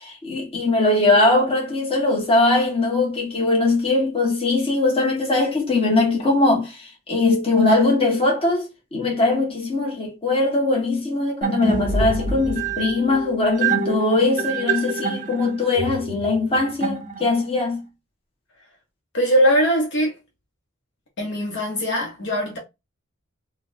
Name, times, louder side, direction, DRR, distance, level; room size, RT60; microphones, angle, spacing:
voice 1, 0.2-17.8, left 2 dB, 30° left, 1.3 m, -21 dB
sound 1, 11.4-17.6, right 4 dB, 40° right, 0.6 m, -26 dB
voice 2, 19.1-20.2 21.2-22.6, equal, 60° left, 1.0 m, -21 dB
4.0 x 2.3 x 2.6 m
head